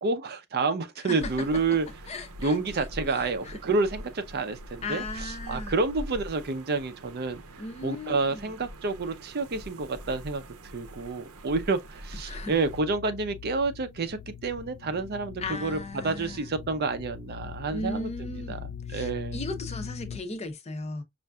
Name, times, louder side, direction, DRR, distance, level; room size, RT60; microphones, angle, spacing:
voice 1, 0.0-1.9 2.4-7.4 7.8-18.6 18.9-19.4, right 3 dB, 45° right, 0.5 m, -29 dB
sound 1, 1.2-12.8, equal, 75° right, 0.7 m, -43 dB
voice 2, 2.1-2.8 3.1-3.6 4.8-5.7 7.6-8.6 12.2-12.5 15.4-16.5 17.7-21.0, left 2 dB, 30° left, 0.6 m, -37 dB
sound 2, 12.6-20.2, left 7 dB, 65° left, 0.3 m, -41 dB
5.4 x 2.5 x 2.3 m
head